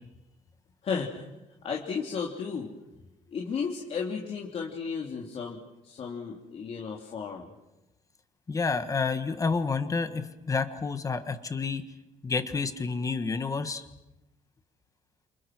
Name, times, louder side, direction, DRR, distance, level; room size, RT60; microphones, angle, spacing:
voice 1, 0.8-1.2 1.6-2.7 3.3-5.6 5.8-7.5, left 5 dB, 45° left, -1 dB, 3.4 m, -34 dB
voice 2, 8.5-11.8 12.2-13.8, left 4 dB, 20° left, 9 dB, 1.7 m, -29 dB
29.5 x 29.0 x 6.3 m, 0.96 s
cardioid pair, 175°, 15 cm